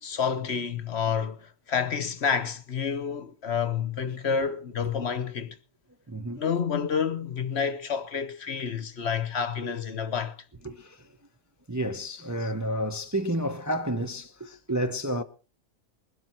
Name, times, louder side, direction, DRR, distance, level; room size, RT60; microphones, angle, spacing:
voice 1, 0.0-5.6 6.4-10.4 12.4-12.5, left 6 dB, 50° left, 1.2 m, -29 dB
voice 2, 6.1-6.4 10.6-11.0 11.7-15.2, right 1 dB, 15° right, 0.6 m, -30 dB
21.0 x 12.0 x 4.4 m
omnidirectional pair, 1.5 m